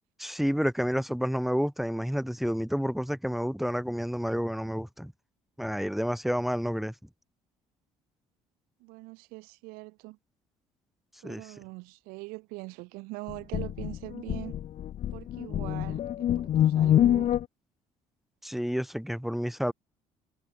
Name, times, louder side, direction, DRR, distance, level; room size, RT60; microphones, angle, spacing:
voice 1, 0.2-5.1 5.6-6.9 11.2-11.4 18.4-19.7, equal, ahead, 1.2 m, -29 dB
voice 2, 8.8-10.2 11.2-14.5 15.1-17.3, right 26 dB, 80° right, 3.1 m, -42 dB
sound 1, 13.3-17.5, left 11 dB, 50° left, 0.6 m, -26 dB
supercardioid pair, 65°, 15 cm